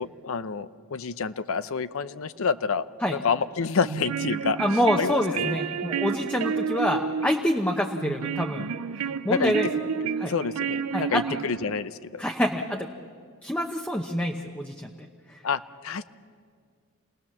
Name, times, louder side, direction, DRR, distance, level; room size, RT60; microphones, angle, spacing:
voice 1, 0.0-2.8 3.1-4.6 5.0-5.6 9.3-9.5 10.3-12.2 15.4-16.0, left 5 dB, 70° left, 13 dB, 0.6 m, -28 dB
sound 1, 3.8-11.8, right 6 dB, 85° right, 0.6 m, -31 dB
voice 2, 4.6-8.7 9.2-9.7 10.2-10.3 10.9-11.4 12.2-12.9 13.4-14.9 15.3-15.4, equal, 5° left, 2 dB, 0.9 m, -26 dB
27.5 x 18.5 x 7.2 m, 2.1 s
head